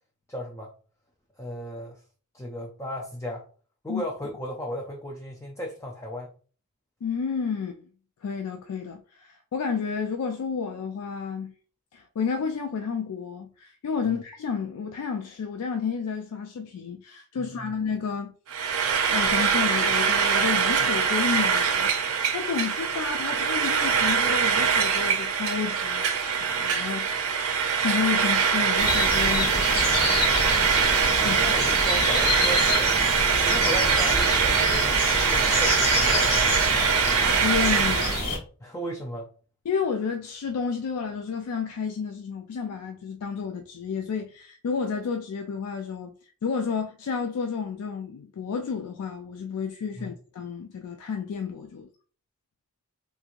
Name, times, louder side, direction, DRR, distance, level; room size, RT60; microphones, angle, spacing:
voice 1, 0.3-0.7 1.4-2.0 2.3-3.5 3.8-6.3 14.0-14.2 17.4-17.7 31.2-32.9 33.4-36.6 38.6-39.3 50.0-50.2, equal, 10° left, 0.4 m, -35 dB
voice 2, 7.0-7.9 8.2-11.5 11.9-18.3 19.1-30.6 31.2-31.4 37.4-38.2 39.7-46.1 46.4-51.9, left 6 dB, 85° left, 0.4 m, -31 dB
Frying (food), 18.5-38.2, right 6 dB, 70° right, 0.6 m, -23 dB
sound 1, 28.8-38.4, left 2 dB, 45° left, 1.1 m, -28 dB
3.5 x 3.0 x 2.5 m
head